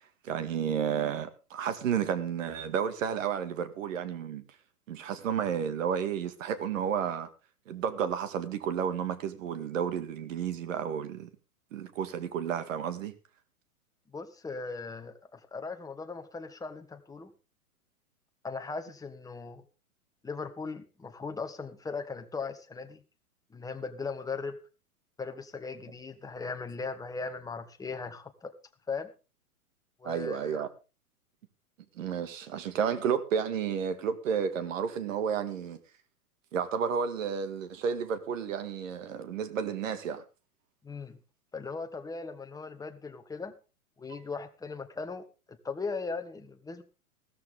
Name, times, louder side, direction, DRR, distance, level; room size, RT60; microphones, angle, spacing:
voice 1, 0.2-4.4 4.9-7.3 7.7-11.3 11.7-13.1 30.0-30.7 32.0-35.8 36.5-40.2, right 7 dB, 60° right, 2.2 m, -31 dB
voice 2, 14.1-17.3 18.4-19.6 20.2-23.0 23.5-24.6 25.2-28.5 28.9-29.1 30.0-30.6 40.8-41.2 41.5-43.5 44.0-46.8, left 4 dB, 10° left, 1.4 m, -38 dB
15.5 x 13.5 x 3.7 m
figure-of-eight pair, 110°, 44 cm